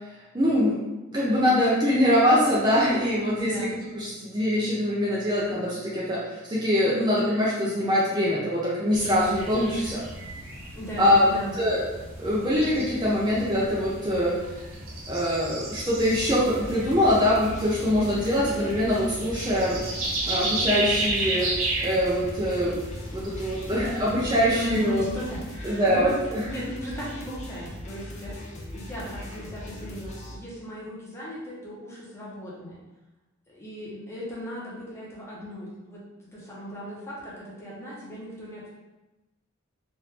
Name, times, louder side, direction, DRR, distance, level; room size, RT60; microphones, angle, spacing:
voice 1, 0.3-0.8 1.1-6.2 6.5-10.0 11.0-11.3 11.6-11.8 12.2-14.4 15.1-19.8 20.3-21.5 21.8-22.8 23.1-25.1 25.6-26.4, equal, 20° right, -7 dB, 0.6 m, -23 dB
voice 2, 3.3-3.7 10.7-11.5 24.5-26.1 26.5-28.4 28.7-32.8 33.5-38.7, equal, 15° left, -7 dB, 0.9 m, -37 dB
sound 1, 8.9-25.4, right 2 dB, 85° right, 0.8 m, -34 dB
sound 2, 16.0-30.3, left 1 dB, 35° left, 0.6 m, -40 dB
3.2 x 2.6 x 3.3 m, 1.1 s
head